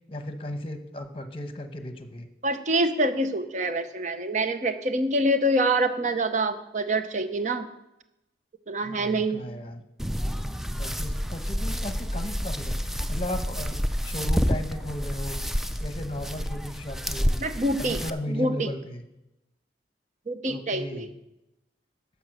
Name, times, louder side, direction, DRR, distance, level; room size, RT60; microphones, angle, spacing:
voice 1, 0.1-2.3 8.8-9.8 10.8-15.4 15.8-17.5 17.8-19.0 20.5-21.1, left 1 dB, 30° left, 8 dB, 0.9 m, -36 dB
voice 2, 2.4-7.7 8.7-9.4 17.4-18.0 18.3-18.7 20.3-21.1, right 1 dB, 40° right, 9 dB, 0.8 m, -26 dB
sound 1, 10.0-18.1, equal, ahead, 0.4 m, -29 dB
11.0 x 7.0 x 6.5 m, 0.90 s
head